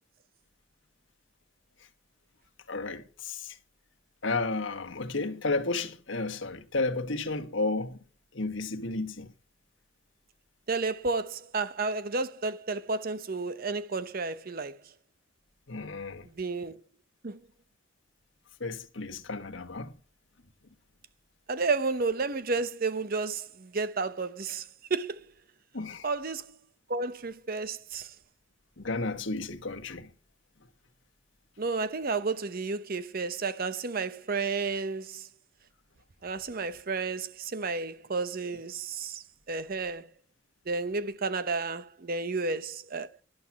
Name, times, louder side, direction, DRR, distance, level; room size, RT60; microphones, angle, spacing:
voice 1, 2.7-3.5 4.2-8.0 8.3-9.3 15.7-16.3 18.6-19.9 25.7-26.0 28.8-30.1, left 3 dB, 70° left, 1.4 m, -32 dB
voice 2, 10.7-14.8 16.4-16.8 17.2-17.4 21.5-25.2 26.0-26.6 26.9-28.1 31.6-35.3 36.2-40.1 40.7-43.1, right 4 dB, 45° right, 0.8 m, -32 dB
11.5 x 7.5 x 7.2 m
head